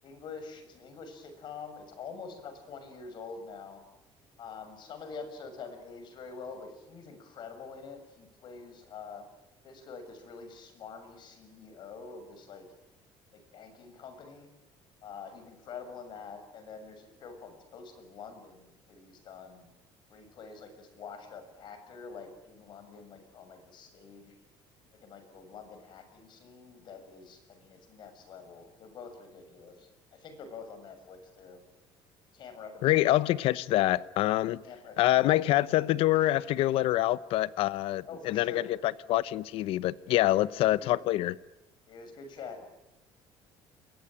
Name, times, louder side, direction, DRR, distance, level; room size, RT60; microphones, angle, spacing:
voice 1, 0.0-3.8 4.4-9.2 9.6-12.7 13.3-14.5 15.0-19.7 20.1-24.3 24.9-31.6 32.3-33.3 34.6-35.5 38.1-38.7 40.6-41.0 41.9-42.7, left 5 dB, 50° left, 6.9 m, -46 dB
voice 2, 32.8-34.6 35.0-41.3, left 15 dB, 65° left, 0.9 m, -26 dB
28.5 x 23.0 x 9.1 m
cardioid pair, 145°, 10 cm